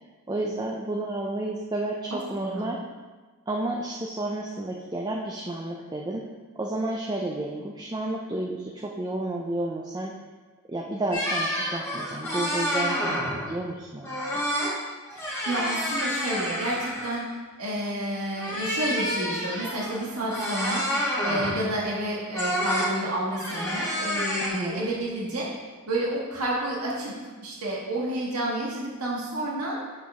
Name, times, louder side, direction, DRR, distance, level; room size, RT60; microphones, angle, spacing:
voice 1, 0.3-2.8 3.5-6.2 6.6-10.1 10.7-14.4 24.5-24.9, right 2 dB, 20° right, -1 dB, 0.5 m, -31 dB
voice 2, 2.1-2.7 15.1-17.3 17.6-20.8 21.2-25.5 25.9-27.1 27.4-29.8, right 1 dB, 85° right, -4 dB, 1.7 m, -30 dB
sound 1, 11.1-13.5 14.0-14.7 15.1-17.3 18.3-21.7 22.3-22.9 23.3-24.5, equal, 10° left, 1.8 m, -29 dB
7.6 x 6.5 x 3.6 m, 1.3 s
head